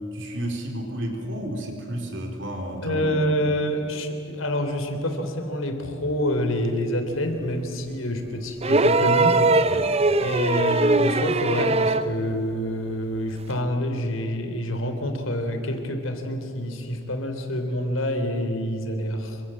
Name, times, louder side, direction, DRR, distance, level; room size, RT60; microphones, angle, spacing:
voice 1, 0.1-3.2 9.6-9.9, right 1 dB, 60° right, 3 dB, 4.3 m, -32 dB
voice 2, 2.8-9.4 10.2-19.4, left 1 dB, 80° left, 6 dB, 3.3 m, -27 dB
sound 1, 8.6-12.2 13.5-13.6, right 2 dB, 30° right, 0.7 m, -20 dB
27.5 x 24.0 x 7.7 m, 2.8 s
head